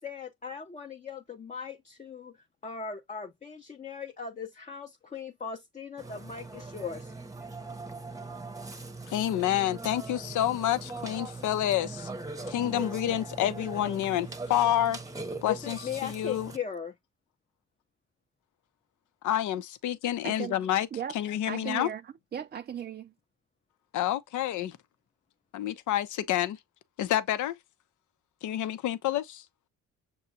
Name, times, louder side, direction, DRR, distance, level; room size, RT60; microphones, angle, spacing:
voice 1, 0.0-2.4 2.6-7.1 15.5-17.0, left 6 dB, 25° left, 0.7 m, -38 dB
Burping eructation, 6.0-16.6, right 3 dB, 10° right, 0.8 m, -41 dB
voice 2, 9.1-12.1 12.5-15.0 15.4-16.5 19.2-20.9 21.1-21.9 23.9-24.7 25.5-26.6 27.0-27.5 28.4-29.4, left 12 dB, 75° left, 0.7 m, -28 dB
voice 3, 20.2-20.6 20.9-21.1 21.5-23.1, right 9 dB, 30° right, 0.4 m, -37 dB
6.9 x 2.3 x 2.7 m
cardioid pair, 90°, 30 cm